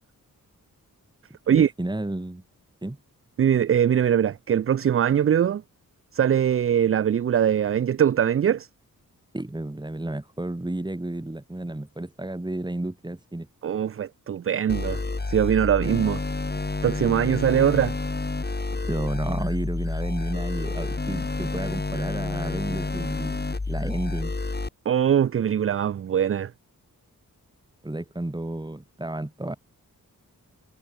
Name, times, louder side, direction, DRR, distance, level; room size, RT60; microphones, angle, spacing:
voice 1, 1.5-2.4 2.8-3.0 9.3-13.5 18.9-24.4 27.8-29.6, right 1 dB, 10° right, 2.2 m, -32 dB
voice 2, 3.4-5.6 6.1-8.7 13.6-15.0 15.3-16.2 16.8-17.9 24.9-26.5, right 9 dB, 40° right, 0.4 m, -22 dB
sound 1, 14.7-24.7, left 3 dB, 30° left, 1.9 m, -29 dB
wide cardioid pair, 85°, 35 cm